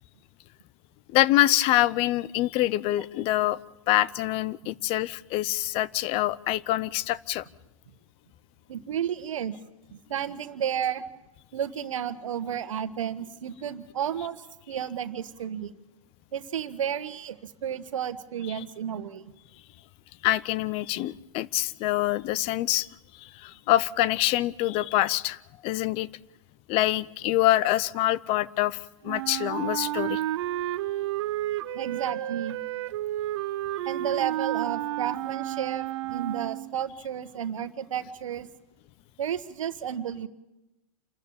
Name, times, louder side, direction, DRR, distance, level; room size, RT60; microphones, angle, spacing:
voice 1, 1.1-3.6 3.9-7.4 20.2-22.9 23.1-26.1 26.7-30.2, left 15 dB, 35° left, 19 dB, 0.7 m, -25 dB
voice 2, 8.7-9.5 9.9-11.0 11.5-15.7 16.3-19.3 31.7-32.6 33.9-38.5 39.2-40.3, right 9 dB, 70° right, 11 dB, 1.4 m, -32 dB
Wind instrument woodwind instrument, 29.0-36.8, right 14 dB, 55° right, 0.9 m, -31 dB
28.0 x 13.5 x 8.8 m, 0.97 s
hypercardioid pair, 115°, 17 cm